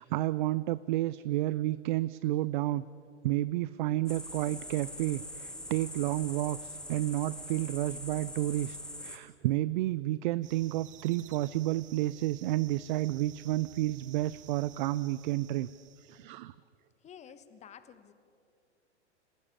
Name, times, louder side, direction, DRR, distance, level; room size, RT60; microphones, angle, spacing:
voice 1, 0.0-2.8 3.2-15.7 16.0-16.5, right 15 dB, 45° right, 17 dB, 0.5 m, -31 dB
sound 1, 4.1-9.2, left 1 dB, ahead, 1.9 m, -43 dB
sound 2, 10.4-16.2, right 12 dB, 20° right, 0.8 m, -54 dB
voice 2, 17.0-18.1, left 8 dB, 20° left, 12 dB, 1.2 m, -51 dB
27.5 x 15.0 x 8.6 m, 2.5 s
figure-of-eight pair, 105°, 35 cm